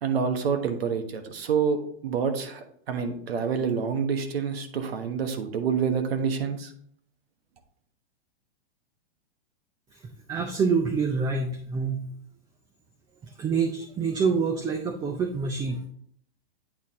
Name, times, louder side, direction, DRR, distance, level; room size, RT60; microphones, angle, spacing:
voice 1, 0.0-6.7, right 6 dB, 80° right, 7 dB, 1.3 m, -27 dB
voice 2, 10.3-12.0 13.4-15.9, right 5 dB, 15° right, 5 dB, 0.4 m, -26 dB
8.7 x 4.2 x 3.6 m, 0.66 s
hypercardioid pair, 135°, 30 cm